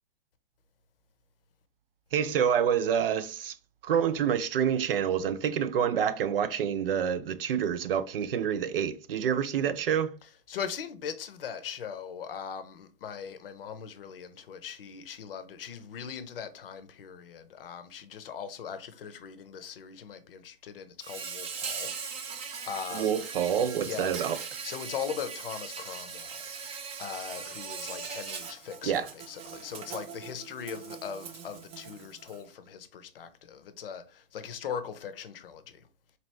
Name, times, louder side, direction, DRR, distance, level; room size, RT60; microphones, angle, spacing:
voice 1, 2.1-3.5 3.8-10.1 22.9-24.4 28.8-29.1, right 8 dB, 70° right, 0.6 m, -27 dB
voice 2, 10.5-23.2 23.8-24.1 24.6-26.4 27.0-35.8, left 7 dB, 75° left, 0.7 m, -40 dB
Insect, 21.0-32.4, right 6 dB, 20° right, 0.6 m, -40 dB
4.0 x 2.9 x 3.2 m
hypercardioid pair, 115°, 29 cm